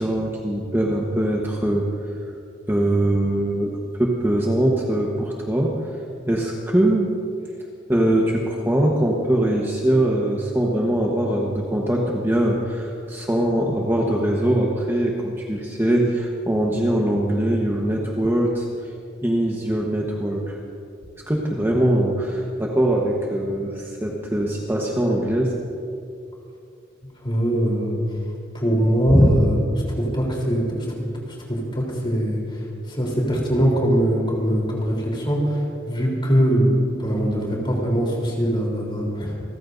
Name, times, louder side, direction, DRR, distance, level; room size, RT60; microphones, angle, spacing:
voice 1, 0.0-1.9 2.7-5.7 6.3-7.1 7.9-18.9 19.2-20.6 21.3-25.5 29.1-29.3, right 1 dB, 10° right, -2 dB, 1.1 m, -22 dB
voice 2, 27.2-28.0 28.5-29.6 30.0-30.9 31.3-39.4, equal, 25° left, -2 dB, 3.6 m, -22 dB
28.0 x 14.0 x 2.7 m, 2.5 s
head